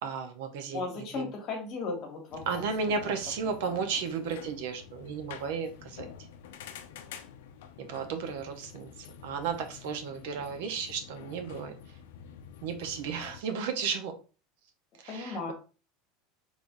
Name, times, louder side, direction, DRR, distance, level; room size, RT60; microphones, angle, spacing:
voice 1, 0.0-1.3 2.5-6.1 7.8-11.7 12.6-14.2 15.0-15.4, right 5 dB, 75° right, 6 dB, 0.7 m, -34 dB
voice 2, 0.7-3.0 3.7-3.8 10.3-10.7 15.1-15.5, left 4 dB, 40° left, 2 dB, 1.3 m, -37 dB
sound 1, 2.3-13.4, left 8 dB, 90° left, 0.5 m, -48 dB
3.4 x 2.6 x 3.5 m, 0.34 s
supercardioid pair, 150°, 0 cm